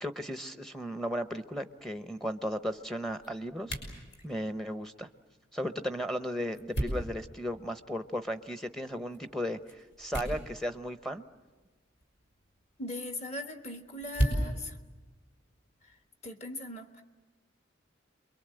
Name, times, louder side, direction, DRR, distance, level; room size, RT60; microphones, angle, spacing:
voice 1, 0.0-3.8 4.2-5.1 5.5-11.3, equal, ahead, 9 dB, 0.8 m, -35 dB
sound 1, 1.2-16.0, right 1 dB, 70° left, 6.1 m, -40 dB
voice 2, 12.8-14.7 16.2-17.0, left 1 dB, 35° left, 6 dB, 1.7 m, -39 dB
28.5 x 23.0 x 7.8 m, 1.3 s
head